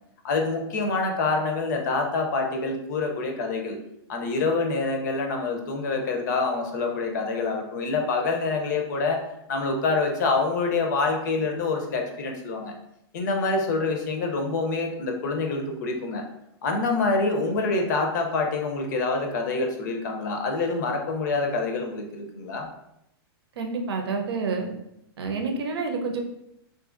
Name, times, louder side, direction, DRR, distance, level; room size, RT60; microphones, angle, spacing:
voice 1, 0.2-3.8 4.1-9.2 9.5-12.7 13.1-16.2 16.6-22.7, left 3 dB, 45° left, 3 dB, 0.6 m, -26 dB
voice 2, 23.6-24.7 25.2-26.2, right 4 dB, 80° right, 2 dB, 0.7 m, -28 dB
3.7 x 2.6 x 2.5 m, 0.81 s
supercardioid pair, 170°, 13 cm